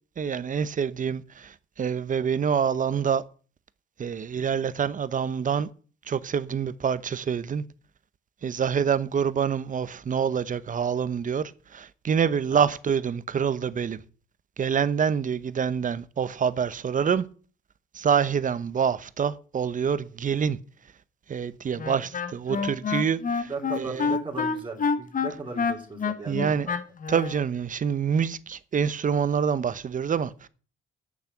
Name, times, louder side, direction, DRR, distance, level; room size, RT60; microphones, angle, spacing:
voice 1, 0.2-3.2 4.0-5.7 6.1-7.6 8.4-14.0 14.6-17.2 17.9-20.6 21.3-23.5 23.8-24.1 26.3-26.7 27.1-30.5, right 7 dB, 40° right, 0.9 m, -26 dB
Wind instrument woodwind instrument, 21.8-27.4, left 5 dB, 40° left, 1.3 m, -28 dB
voice 2, 23.4-26.8, right 3 dB, 25° right, 3.2 m, -38 dB
8.8 x 7.0 x 8.7 m
cardioid pair, 90°, 20 cm